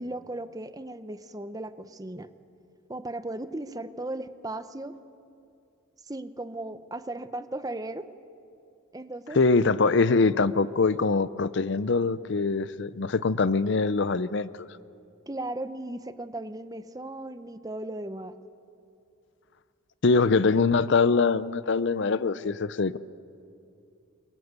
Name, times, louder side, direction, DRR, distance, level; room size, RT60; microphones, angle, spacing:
voice 1, 0.0-2.3 2.9-4.9 6.1-8.1 8.9-9.4 15.3-18.4, right 1 dB, 15° right, 11 dB, 0.8 m, -36 dB
voice 2, 9.3-14.7 20.0-23.0, left 4 dB, 55° left, 16 dB, 0.6 m, -23 dB
27.5 x 22.5 x 8.2 m, 2.6 s
head